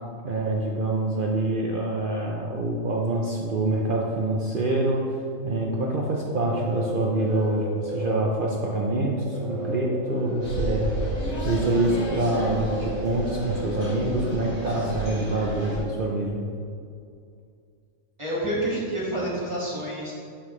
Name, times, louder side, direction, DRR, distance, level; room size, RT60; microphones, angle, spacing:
voice 1, 0.2-10.9 11.4-16.5, right 2 dB, 50° right, -2 dB, 0.7 m, -26 dB
sound 1, 6.0-14.7, equal, 65° right, 1.9 m, -35 dB
sound 2, 10.4-15.8, equal, 80° left, 2.7 m, -31 dB
voice 2, 18.2-20.1, right 1 dB, 20° right, -7 dB, 1.9 m, -28 dB
11.0 x 5.6 x 3.2 m, 2.4 s
omnidirectional pair, 1.4 m